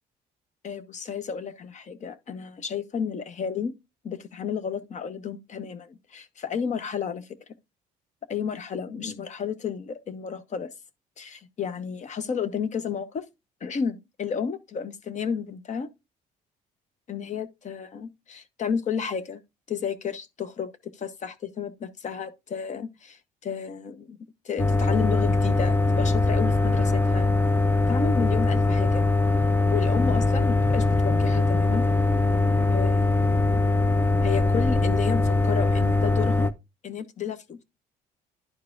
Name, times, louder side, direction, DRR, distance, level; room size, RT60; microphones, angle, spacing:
voice 1, 0.6-3.7 4.0-7.3 8.3-10.7 11.2-13.2 13.6-15.9 17.1-19.4 19.7-24.2 24.4-27.3 27.9-29.0 29.7-31.9 32.7-33.3 34.2-36.5 36.8-37.6, left 6 dB, 45° left, 0.9 m, -32 dB
sound 1, 24.6-36.5, left 3 dB, 15° left, 0.6 m, -22 dB
11.0 x 4.7 x 2.5 m
supercardioid pair, 75°, 16 cm